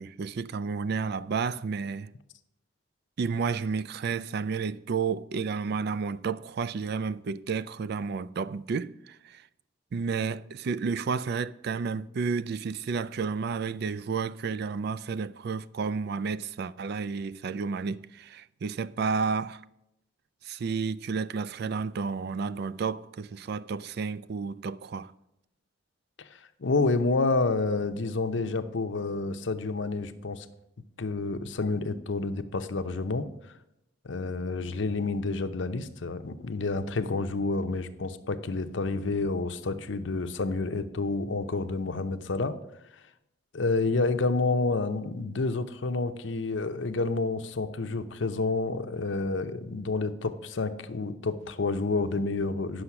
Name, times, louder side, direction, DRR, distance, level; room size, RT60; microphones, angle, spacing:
voice 1, 0.0-2.1 3.2-9.4 9.9-19.6 20.4-25.1, right 5 dB, 55° right, 0.4 m, -31 dB
voice 2, 26.6-30.5 31.0-33.3 34.0-42.6 43.5-52.8, left 3 dB, 70° left, 0.7 m, -29 dB
9.7 x 6.4 x 5.9 m
head